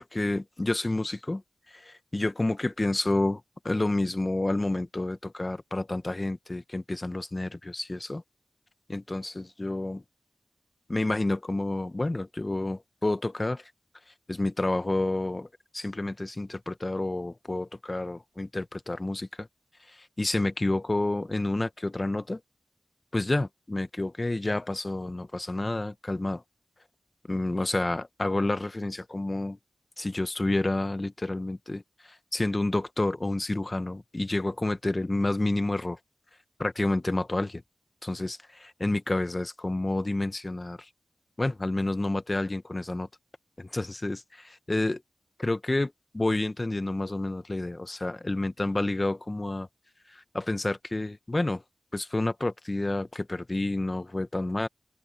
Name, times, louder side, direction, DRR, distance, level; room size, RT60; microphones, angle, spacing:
voice 1, 0.0-1.4 1.7-8.2 8.9-10.0 10.9-13.6 14.3-15.5 15.7-19.5 19.9-22.4 23.1-26.4 27.3-29.6 30.0-36.0 36.6-37.6 38.0-40.9 41.4-43.1 43.6-45.0 45.4-49.7 50.1-51.6 51.9-54.7, left 2 dB, 30° left, 1.3 m, -29 dB
open air
wide cardioid pair, 60°, 0 cm